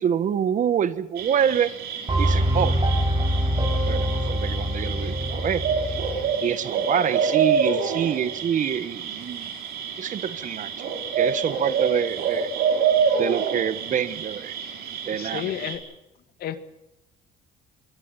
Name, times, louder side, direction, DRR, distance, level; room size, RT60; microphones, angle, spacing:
voice 1, 0.0-1.7 2.2-2.8 3.9-5.7 6.4-9.5 10.0-10.7 11.2-12.5 13.2-14.6 15.1-15.5, right 8 dB, 50° right, 15 dB, 1.3 m, -26 dB
sound 1, 1.2-15.8, right 6 dB, 70° right, 5.2 m, -27 dB
sound 2, 2.1-6.3, right 1 dB, 30° right, 7.5 m, -24 dB
voice 2, 15.1-15.8 16.4-16.6, left 11 dB, 65° left, 11 dB, 1.9 m, -31 dB
25.0 x 22.0 x 5.7 m, 0.91 s
cardioid pair, 110°, 17 cm